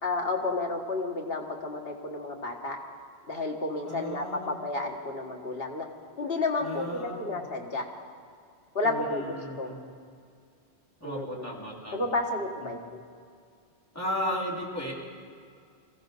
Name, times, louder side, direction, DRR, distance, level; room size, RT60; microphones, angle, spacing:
voice 1, 0.0-2.8 3.3-5.9 6.2-7.9 8.8-9.7 11.0-11.4 11.9-13.0, left 2 dB, 65° left, 0 dB, 1.9 m, -31 dB
voice 2, 3.9-4.6 6.6-7.4 8.8-9.8 11.0-12.1 12.6-12.8 13.9-14.9, left 1 dB, 15° left, -5 dB, 2.8 m, -35 dB
22.0 x 15.5 x 4.1 m, 2.2 s
omnidirectional pair, 1.1 m